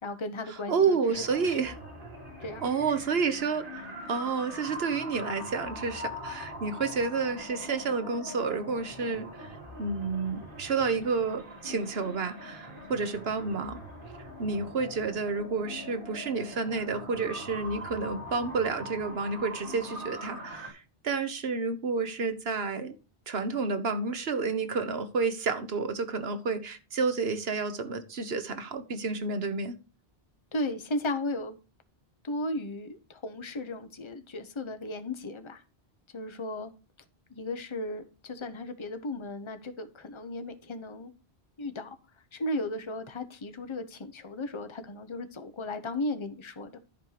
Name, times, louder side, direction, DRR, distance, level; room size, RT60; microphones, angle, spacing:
voice 1, 0.0-1.0 1.5-1.6 2.4-2.6 30.5-31.5 32.2-35.6 36.1-36.7 37.3-41.1 41.6-42.0 42.3-46.8, left 1 dB, 30° left, 1.0 m, -35 dB
voice 2, 0.7-1.8 2.6-13.8 14.4-23.0 23.3-29.8, right 4 dB, 75° right, 1.4 m, -30 dB
sound 1, 1.1-20.7, equal, 55° right, 3.2 m, -42 dB
11.0 x 4.5 x 6.6 m
omnidirectional pair, 1.1 m